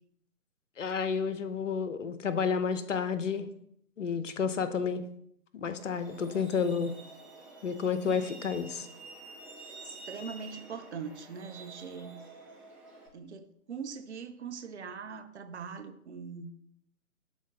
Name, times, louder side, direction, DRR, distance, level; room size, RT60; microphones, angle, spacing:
voice 1, 0.8-3.5 4.0-5.0 5.5-6.9 7.6-8.9, left 6 dB, 60° left, 12 dB, 0.7 m, -30 dB
Truck, 5.7-13.1, right 3 dB, ahead, 2.0 m, -49 dB
voice 2, 9.7-12.2 13.1-16.6, right 6 dB, 50° right, 8 dB, 0.8 m, -42 dB
11.5 x 3.8 x 3.8 m, 0.72 s
figure-of-eight pair, 125°, 44 cm